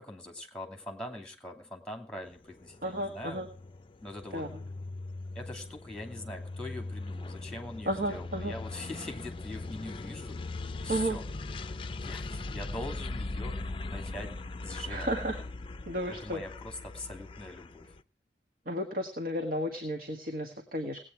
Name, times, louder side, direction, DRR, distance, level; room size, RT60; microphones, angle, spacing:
voice 1, 0.0-3.4 4.0-4.5 5.3-10.4 10.8-11.3 12.0-14.3 14.6-15.1 16.1-17.9, left 1 dB, 5° left, 4 dB, 2.6 m, -42 dB
sound 1, 2.3-18.0, left 2 dB, 30° left, 0.6 m, -40 dB
voice 2, 2.8-3.5 4.3-4.5 7.9-8.6 10.9-11.2 14.9-15.4 15.9-16.4 18.6-21.0, right 1 dB, 55° right, 4 dB, 1.7 m, -33 dB
19.0 x 8.7 x 4.6 m, 0.41 s
head